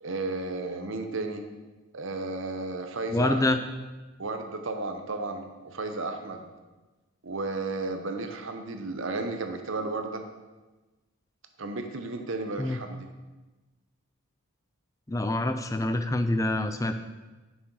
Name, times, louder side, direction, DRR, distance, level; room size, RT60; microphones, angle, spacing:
voice 1, 0.0-1.4 1.9-3.4 4.2-6.4 7.2-10.2 11.6-13.0, right 3 dB, 55° right, 6 dB, 0.8 m, -33 dB
voice 2, 3.1-3.6 12.6-12.8 15.1-16.9, left 2 dB, 15° left, 8 dB, 0.4 m, -26 dB
7.7 x 6.2 x 4.7 m, 1.2 s
head